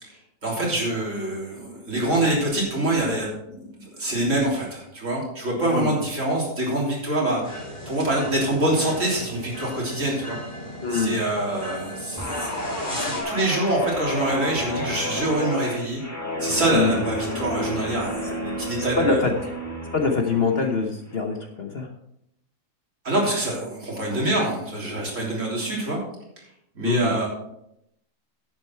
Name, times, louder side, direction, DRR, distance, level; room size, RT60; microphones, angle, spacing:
voice 1, 0.0-10.4 10.9-12.6 12.9-16.0 16.4-19.2 23.0-26.0 26.8-27.3, right 1 dB, 55° right, -3 dB, 3.7 m, -25 dB
sound 1, 7.4-13.2, equal, 25° left, 3.3 m, -36 dB
voice 2, 10.8-11.2 16.7-17.0 18.2-18.3 18.8-19.5 19.9-21.9 26.8-27.2, left 4 dB, 45° left, 3 dB, 1.1 m, -24 dB
Guitar, 12.2-20.8 21.2-21.5, left 1 dB, 10° left, 1.5 m, -31 dB
10.5 x 8.7 x 4.6 m, 0.79 s
omnidirectional pair, 1.6 m